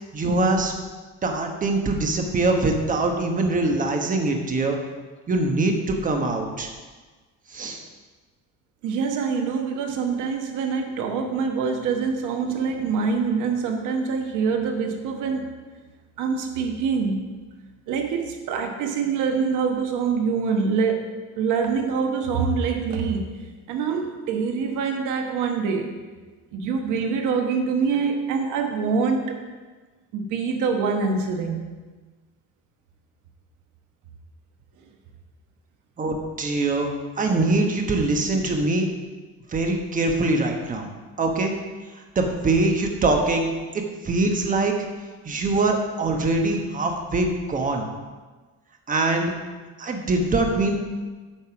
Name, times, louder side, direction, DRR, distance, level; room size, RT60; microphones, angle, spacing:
voice 1, 0.1-0.7 1.2-4.8 5.3-6.7 7.5-7.8 12.4-12.7 36.0-36.9 37.2-38.9 39.5-40.9 41.2-41.5 42.1-43.5 43.7-44.8 45.2-47.9 48.9-49.3 49.8-50.7, right 2 dB, 25° right, 3 dB, 1.2 m, -23 dB
voice 2, 8.8-15.5 16.2-17.2 17.9-21.1 21.4-23.3 23.7-25.9 26.5-29.4 30.1-31.6, right 5 dB, 75° right, 4 dB, 1.2 m, -25 dB
8.9 x 5.2 x 6.1 m, 1.3 s
cardioid pair, 150°, 31 cm